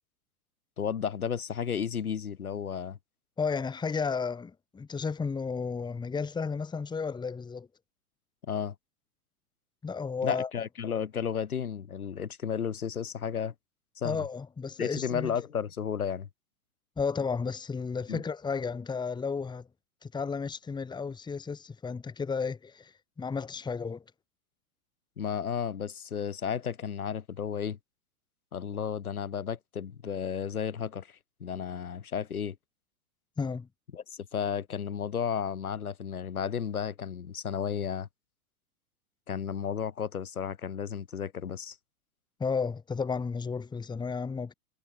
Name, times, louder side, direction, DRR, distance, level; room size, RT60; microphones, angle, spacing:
voice 1, 0.8-3.0 8.5-8.7 10.2-13.5 14.0-14.3 14.8-16.3 18.1-18.2 25.2-27.8 28.5-32.6 33.9-38.1 39.3-41.8, left 7 dB, 85° left, 4.5 m, -33 dB
voice 2, 3.4-7.7 9.8-10.5 14.0-15.3 17.0-19.7 20.0-22.9 23.2-24.0 33.4-33.7 42.4-44.5, left 5 dB, 10° left, 1.7 m, -33 dB
hypercardioid pair, 115°, 42 cm